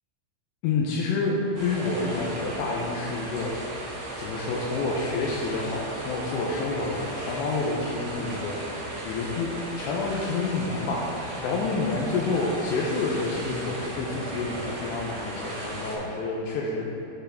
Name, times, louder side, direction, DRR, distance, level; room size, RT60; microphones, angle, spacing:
voice 1, 0.6-3.6 4.2-9.5 9.8-16.8, left 3 dB, 80° left, -2 dB, 2.6 m, -28 dB
sound 1, 1.5-15.9, right 1 dB, 55° right, 2.3 m, -36 dB
13.0 x 4.6 x 3.5 m, 2.9 s
omnidirectional pair, 5.6 m